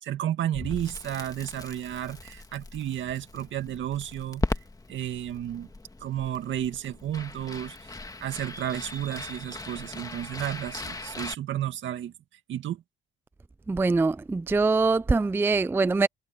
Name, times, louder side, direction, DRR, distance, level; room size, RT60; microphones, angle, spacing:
voice 1, 0.0-4.4 4.9-5.7 6.0-7.8 8.2-12.1 12.5-12.8, right 11 dB, 75° right, 2.3 m, -32 dB
Crackle, 0.5-11.3, left 2 dB, 20° left, 2.0 m, -38 dB
voice 2, 13.7-16.1, right 3 dB, 10° right, 0.4 m, -23 dB
cardioid pair, 90°, 20 cm